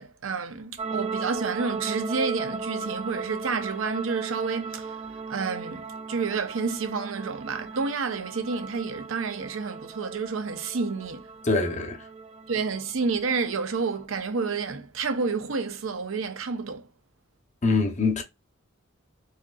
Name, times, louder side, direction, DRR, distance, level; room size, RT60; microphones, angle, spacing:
voice 1, 0.0-5.0 5.3-11.3 12.5-16.9, right 4 dB, 75° right, 0.7 m, -29 dB
sound 1, 0.8-14.0, right 4 dB, 30° right, 0.4 m, -37 dB
voice 2, 11.4-12.0 17.6-18.2, left 3 dB, 35° left, 0.7 m, -24 dB
4.2 x 2.7 x 2.3 m
head